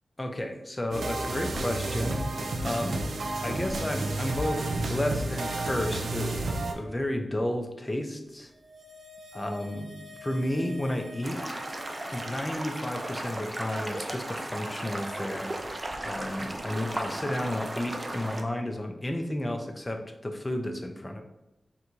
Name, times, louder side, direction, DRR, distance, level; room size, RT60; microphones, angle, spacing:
voice 1, 0.2-2.2 2.6-3.0 3.4-6.3 6.7-8.5 9.3-9.9 10.2-11.6 12.1-15.5 16.0-21.2, left 1 dB, 20° left, 5 dB, 0.5 m, -32 dB
sound 1, 0.9-6.7, right 2 dB, 85° right, 0.5 m, -31 dB
sound 2, 8.4-13.8 14.1-14.2, left 2 dB, 60° right, 0.9 m, -49 dB
sound 3, 11.2-18.4, right 1 dB, 30° right, 0.5 m, -35 dB
3.5 x 2.7 x 4.4 m, 0.93 s
wide cardioid pair, 105°, 0 cm